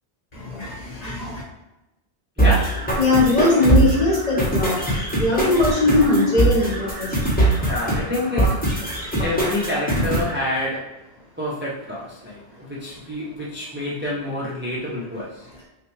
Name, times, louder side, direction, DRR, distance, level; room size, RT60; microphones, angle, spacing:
voice 1, 0.3-1.4 3.0-7.3, left 2 dB, 35° left, -4 dB, 1.1 m, -20 dB
sound 1, 2.4-10.4, right 1 dB, 10° left, 1.0 m, -22 dB
voice 2, 2.4-2.9 7.6-8.6 9.2-10.9 11.4-15.4, left 1 dB, 10° right, -6 dB, 0.6 m, -27 dB
5.6 x 2.3 x 3.2 m, 0.98 s
omnidirectional pair, 1.2 m